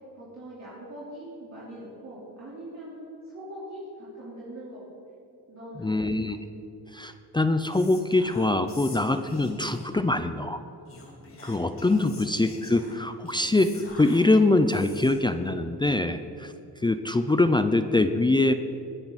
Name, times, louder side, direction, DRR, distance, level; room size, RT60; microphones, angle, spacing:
voice 1, 0.1-4.8 5.5-5.9 11.9-12.7, right 1 dB, 45° right, -9 dB, 3.9 m, -42 dB
voice 2, 5.8-6.4 6.9-10.6 11.4-18.5, left 2 dB, 10° left, 9 dB, 0.5 m, -24 dB
Whispering, 7.7-10.0 10.9-15.3, left 2 dB, 35° left, 2.8 m, -45 dB
21.0 x 11.0 x 4.2 m, 2.7 s
cardioid pair, 120°, 39 cm